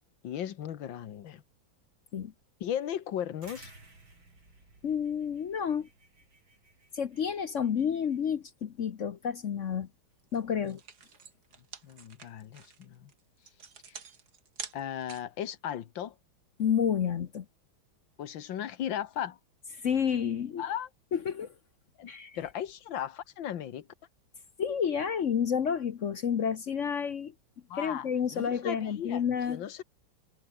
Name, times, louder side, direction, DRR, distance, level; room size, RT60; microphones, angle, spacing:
voice 1, 0.2-1.4 2.6-3.7 10.6-10.7 11.8-13.1 13.9-14.0 14.7-16.2 18.2-19.4 20.6-20.9 22.0-22.1 22.4-23.9 27.7-29.2 29.5-29.8, left 10 dB, 75° left, 1.9 m, -36 dB
sound 1, 3.4-8.3, right 2 dB, 75° right, 8.2 m, -56 dB
voice 2, 4.8-5.9 6.9-9.9 10.3-10.8 16.6-17.4 19.8-20.6 21.1-21.5 22.1-22.4 24.6-27.3 27.7-29.6, left 7 dB, 50° left, 0.9 m, -30 dB
sound 2, 10.2-10.4 10.6-15.4, right 6 dB, 55° right, 2.5 m, -46 dB
omnidirectional pair, 2.2 m